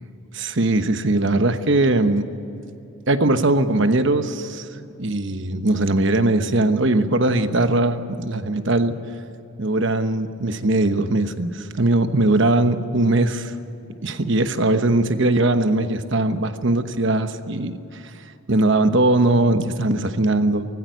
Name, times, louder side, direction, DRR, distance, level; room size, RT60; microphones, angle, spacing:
voice 1, 0.3-2.2 3.1-4.7 5.0-8.9 9.6-13.5 14.0-17.8 18.5-20.7, right 2 dB, 55° right, 9 dB, 1.1 m, -20 dB
19.0 x 15.5 x 9.5 m, 2.8 s
head